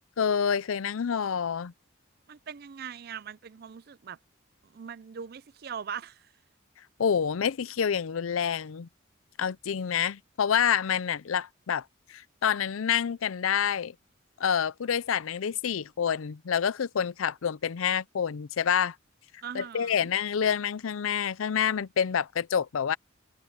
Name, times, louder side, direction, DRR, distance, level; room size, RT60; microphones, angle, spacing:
voice 1, 0.2-1.7 7.0-8.9 9.4-11.8 12.1-13.9 14.4-18.9 19.5-23.0, left 7 dB, 85° left, 0.5 m, -27 dB
voice 2, 2.3-4.2 4.6-6.3 19.4-20.1, right 7 dB, 50° right, 0.4 m, -41 dB
head